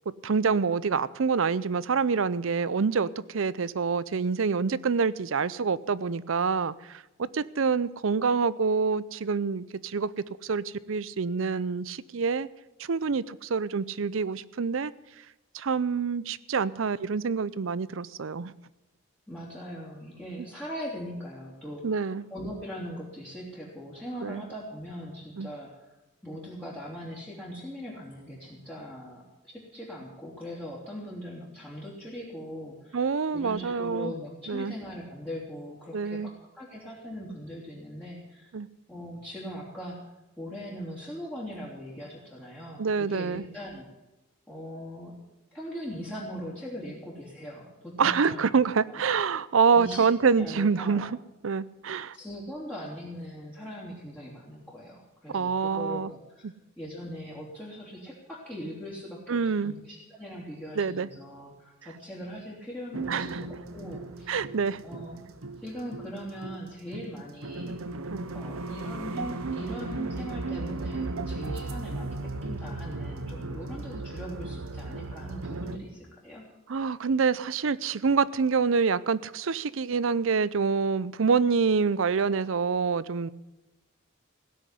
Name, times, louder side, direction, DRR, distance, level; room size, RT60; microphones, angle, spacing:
voice 1, 0.2-12.5 12.8-14.9 15.5-18.5 21.8-22.2 24.2-24.4 25.4-25.5 32.9-34.1 34.5-34.7 35.9-36.3 38.5-38.7 42.8-43.4 48.0-51.1 51.4-52.2 55.3-56.1 56.4-56.5 59.3-59.7 60.7-61.1 63.1-63.4 64.3-64.8 68.1-68.3 76.7-83.3, right 5 dB, 70° right, 19 dB, 0.5 m, -26 dB
voice 2, 19.3-25.9 26.2-33.1 33.3-38.5 38.9-40.0 40.4-43.9 44.5-45.1 45.5-48.5 49.0-49.1 49.7-51.1 52.1-64.4 64.8-65.3 65.6-67.8 68.3-76.5, equal, 5° left, -7 dB, 3.0 m, -40 dB
sound 1, 62.9-75.8, right 2 dB, 85° right, 1.0 m, -36 dB
17.0 x 6.5 x 9.9 m, 1.0 s
head